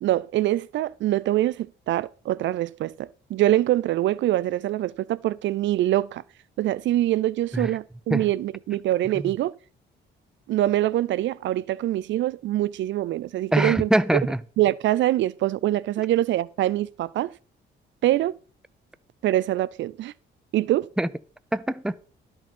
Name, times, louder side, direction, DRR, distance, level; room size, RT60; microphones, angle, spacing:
voice 1, 0.0-6.2 6.6-9.5 10.5-13.9 14.6-17.3 18.0-18.3 19.2-20.1 20.5-20.9, right 14 dB, 70° right, 0.4 m, -24 dB
voice 2, 13.5-14.4 21.0-21.1 21.5-22.0, right 1 dB, 5° right, 0.6 m, -23 dB
12.5 x 5.2 x 5.3 m
cardioid pair, 90°, 20 cm